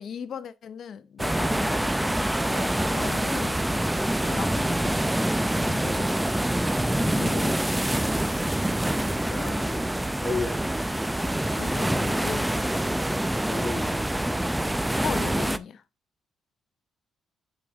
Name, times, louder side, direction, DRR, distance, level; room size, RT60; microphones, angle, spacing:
voice 1, 0.0-2.2 2.9-3.6 4.2-5.1 7.0-7.6 11.6-12.8 15.0-15.8, left 7 dB, 60° left, 0.7 m, -37 dB
sound 1, 1.2-15.6, right 1 dB, 5° right, 0.5 m, -26 dB
voice 2, 2.4-3.1 3.7-3.8 5.6-6.1 9.0-9.9 10.2-10.6 13.5-14.1, left 3 dB, 25° left, 3.5 m, -34 dB
10.0 x 5.0 x 3.4 m
cardioid pair, 90°, 0 cm